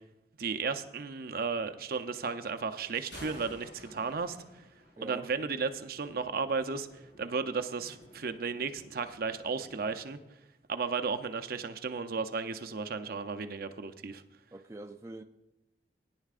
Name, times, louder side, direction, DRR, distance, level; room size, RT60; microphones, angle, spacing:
voice 1, 0.4-4.7 5.0-10.2 10.7-14.2, right 5 dB, 55° right, 0.6 m, -34 dB
Thunder, 2.8-10.0, left 1 dB, 80° left, 4.7 m, -54 dB
voice 2, 5.0-5.3 14.5-15.2, right 2 dB, 15° right, 0.4 m, -44 dB
18.5 x 10.5 x 2.5 m
head